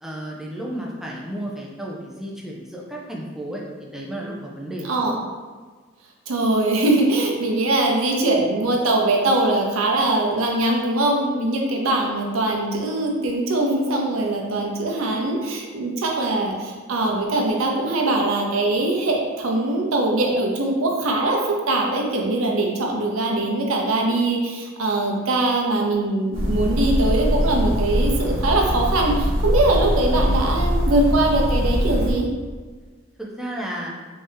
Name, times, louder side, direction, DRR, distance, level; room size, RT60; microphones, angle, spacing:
voice 1, 0.0-4.9 33.2-33.9, right 1 dB, ahead, -3 dB, 0.4 m, -33 dB
voice 2, 6.3-32.3, right 2 dB, 85° right, 0 dB, 0.6 m, -22 dB
sound 1, 26.3-32.1, equal, 65° right, 1.0 m, -22 dB
3.4 x 2.7 x 3.4 m, 1.4 s
head